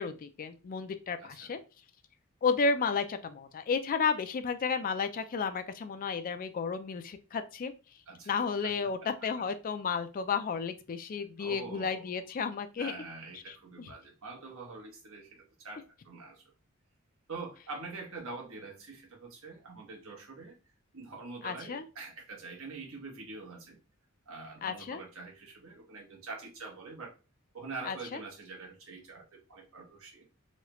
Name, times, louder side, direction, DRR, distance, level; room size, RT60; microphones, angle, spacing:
voice 1, 0.0-1.6 2.4-7.7 8.3-12.9 13.5-13.9 21.4-21.8 24.6-25.0 27.9-28.2, left 5 dB, 40° left, 9 dB, 0.4 m, -32 dB
voice 2, 1.2-1.6 8.1-8.7 11.4-12.1 12.8-16.4 17.3-20.6 20.9-23.8 24.3-27.1 27.5-30.3, right 3 dB, 70° right, 0 dB, 1.1 m, -45 dB
3.1 x 2.3 x 3.0 m, 0.31 s
head